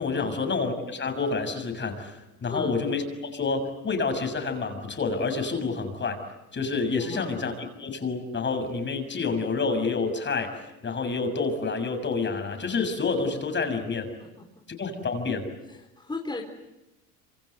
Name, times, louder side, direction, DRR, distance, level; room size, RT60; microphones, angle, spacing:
voice 1, 0.0-6.2 6.5-14.1 14.7-15.5, left 4 dB, 25° left, 7 dB, 6.6 m, -28 dB
voice 2, 7.0-7.3 14.4-14.5 15.7-16.4, left 2 dB, 10° left, 0 dB, 4.0 m, -36 dB
27.0 x 26.5 x 8.0 m, 0.97 s
supercardioid pair, 100°, 40 cm